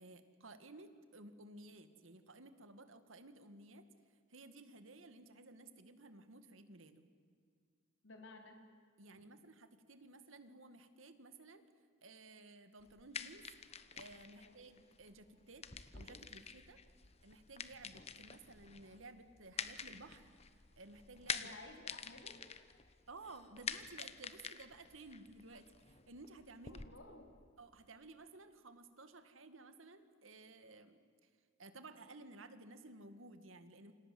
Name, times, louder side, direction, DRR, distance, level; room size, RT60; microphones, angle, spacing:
voice 1, 0.0-3.9 4.3-7.0 9.0-11.6 12.0-13.5 13.9-15.6 15.9-16.8 17.2-21.5 23.1-26.8 27.6-31.3 31.6-33.9, right 2 dB, 85° right, 10 dB, 2.1 m, -56 dB
voice 2, 8.0-8.6 14.4-14.6 21.3-22.4 26.6-27.4, left 2 dB, 70° left, 4 dB, 4.2 m, -55 dB
sound 1, 12.8-26.8, left 6 dB, 30° left, 1.1 m, -48 dB
28.5 x 26.5 x 7.9 m, 2.2 s
head